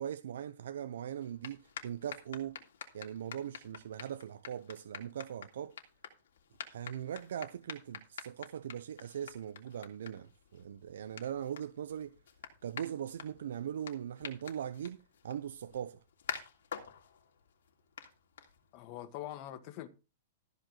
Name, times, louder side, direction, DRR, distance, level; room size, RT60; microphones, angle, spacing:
voice 1, 0.0-2.6 2.9-5.7 6.6-12.2 12.6-16.0, right 9 dB, 80° right, 0.7 m, -40 dB
sound 1, 1.2-18.9, left 8 dB, 90° left, 3.1 m, -49 dB
voice 2, 18.7-19.9, left 13 dB, 40° left, 1.7 m, -43 dB
14.5 x 5.2 x 6.4 m
supercardioid pair, 155°, 0 cm